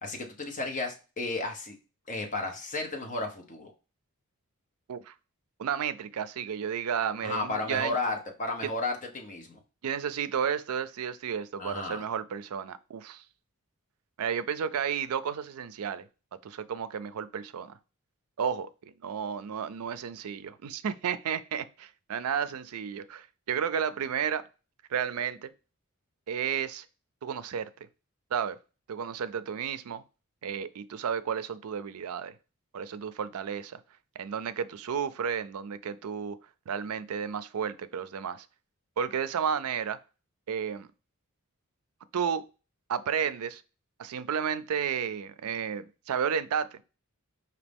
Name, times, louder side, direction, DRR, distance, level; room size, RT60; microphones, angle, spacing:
voice 1, 0.0-1.8 2.1-3.7 7.2-9.6 11.6-12.0, left 2 dB, 35° left, 1.0 m, -33 dB
voice 2, 5.6-7.9 8.6-8.7 9.8-13.2 14.2-16.1 16.4-17.8 18.4-18.7 19.0-24.4 24.9-25.5 26.3-26.8 27.2-27.7 28.3-28.6 28.9-30.0 30.4-32.3 32.7-33.8 34.2-36.4 36.7-38.5 39.0-40.0 40.5-40.9 42.1-42.5 42.9-43.6 44.0-46.8, right 7 dB, 75° right, 0.4 m, -32 dB
5.1 x 2.8 x 3.4 m
head